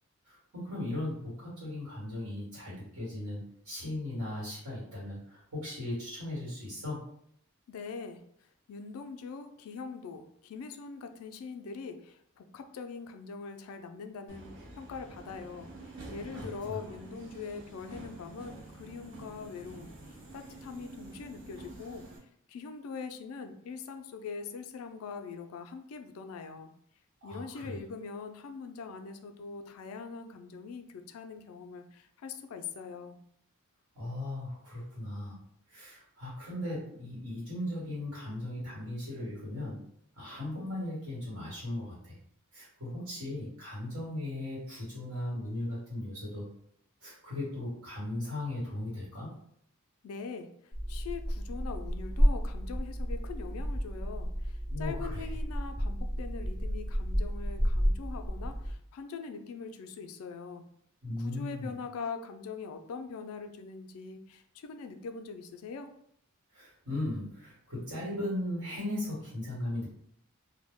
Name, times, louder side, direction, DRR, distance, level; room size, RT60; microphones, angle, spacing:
voice 1, 0.3-7.0 16.4-16.8 27.2-27.8 33.9-39.9 40.2-42.2 42.5-46.4 47.0-49.3 54.7-55.3 61.0-61.7 66.5-69.9, left 1 dB, 85° right, -6 dB, 1.3 m, -37 dB
voice 2, 7.7-8.2 8.7-22.1 22.5-26.7 27.2-33.2 50.0-60.6 61.2-65.9, left 5 dB, 75° left, 7 dB, 0.3 m, -42 dB
Subway metro underground, 14.3-22.2, right 2 dB, 60° right, 0.6 m, -48 dB
sound 1, 50.7-58.7, equal, 5° left, 0.5 m, -31 dB
2.1 x 2.0 x 3.4 m, 0.69 s
head